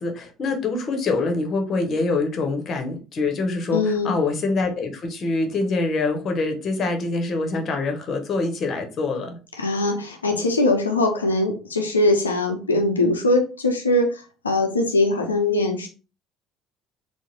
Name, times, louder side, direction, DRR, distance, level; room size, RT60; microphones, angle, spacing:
voice 1, 0.0-9.4, left 3 dB, 40° left, 4 dB, 0.8 m, -25 dB
voice 2, 3.7-4.1 9.6-15.9, left 2 dB, 80° left, 2 dB, 0.4 m, -21 dB
3.7 x 2.1 x 3.0 m, 0.33 s
figure-of-eight pair, 60°, 0 cm